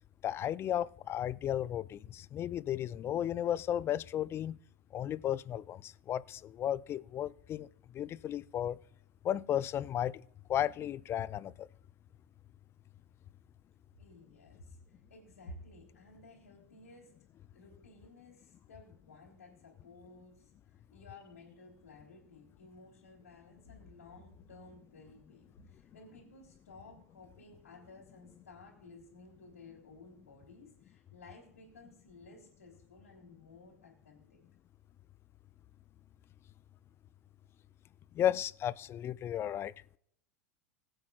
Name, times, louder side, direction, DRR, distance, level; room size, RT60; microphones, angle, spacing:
voice 1, 0.2-4.6 4.9-7.7 7.9-8.8 9.2-10.2 10.5-11.7 38.1-39.7, left 11 dB, 30° left, 0.4 m, -34 dB
voice 2, 14.0-17.1 17.5-34.4, left 2 dB, 85° left, 2.9 m, -55 dB
21.5 x 7.7 x 2.4 m
hypercardioid pair, 90°, 8 cm